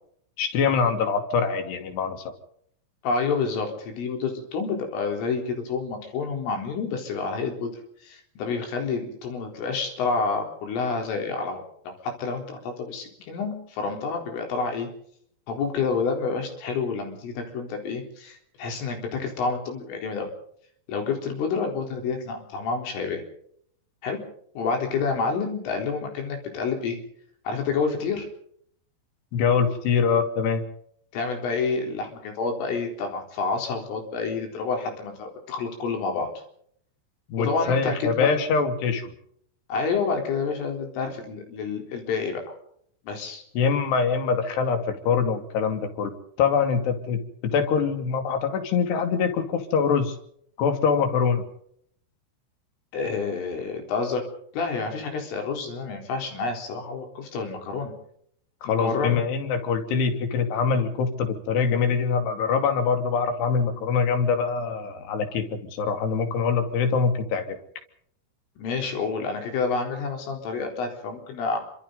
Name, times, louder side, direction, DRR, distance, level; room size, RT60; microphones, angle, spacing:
voice 1, 0.4-2.2 29.3-30.6 37.3-39.1 43.6-46.1 46.4-50.2 50.6-51.4 58.6-67.6, left 5 dB, 60° left, 6 dB, 4.4 m, -24 dB
voice 2, 3.0-7.7 8.0-11.6 12.0-14.9 15.5-20.3 20.9-23.2 24.0-24.2 24.6-27.0 27.4-28.3 31.1-36.3 37.4-38.3 39.7-42.5 43.0-43.4 52.9-54.2 54.5-57.9 58.8-59.2 68.6-71.6, left 4 dB, 85° left, 3 dB, 6.5 m, -28 dB
29.0 x 25.5 x 4.0 m, 0.67 s
omnidirectional pair, 5.6 m